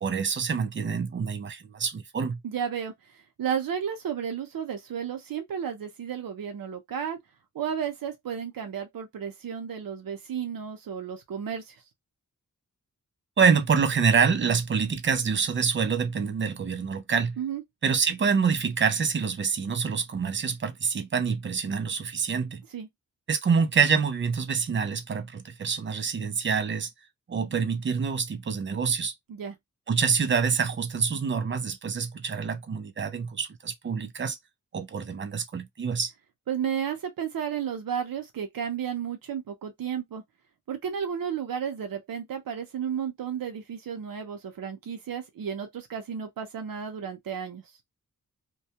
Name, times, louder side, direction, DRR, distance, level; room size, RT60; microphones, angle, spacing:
voice 1, 0.0-2.4 13.4-17.4 17.8-22.6 23.3-26.9 27.3-29.1 29.9-34.4 34.7-36.1, right 6 dB, 35° right, 0.4 m, -26 dB
voice 2, 2.4-2.9 3.4-7.2 7.5-11.8 17.4-17.6 22.7-22.9 29.3-29.6 36.5-40.2 40.7-47.6, right 8 dB, 80° right, 0.6 m, -33 dB
2.2 x 2.1 x 2.7 m
wide cardioid pair, 165°, 34 cm